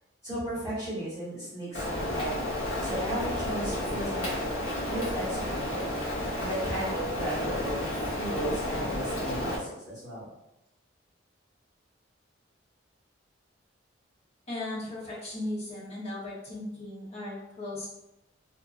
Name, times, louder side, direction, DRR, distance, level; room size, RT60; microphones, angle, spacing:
voice 1, 0.2-4.3 4.9-5.9 6.4-10.3, right 1 dB, 15° left, -10 dB, 1.3 m, -35 dB
Rain, 1.7-9.6, left 1 dB, 85° left, 1.0 m, -31 dB
voice 2, 14.5-17.9, left 1 dB, 30° left, -7 dB, 0.9 m, -37 dB
2.6 x 2.5 x 2.5 m, 0.89 s
head